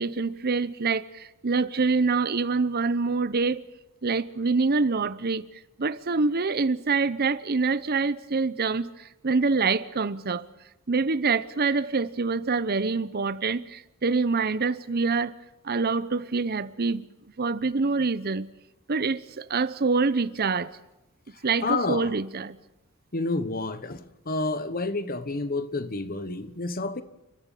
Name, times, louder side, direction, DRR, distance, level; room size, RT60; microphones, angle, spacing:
voice 1, 0.0-3.6 4.0-5.4 5.8-10.5 10.9-15.3 15.6-17.1 17.4-18.5 18.9-20.8 21.4-22.6, right 4 dB, 45° right, 0.8 m, -25 dB
voice 2, 21.6-22.1 23.1-27.0, left 3 dB, 40° left, 1.2 m, -29 dB
29.5 x 12.5 x 9.1 m
head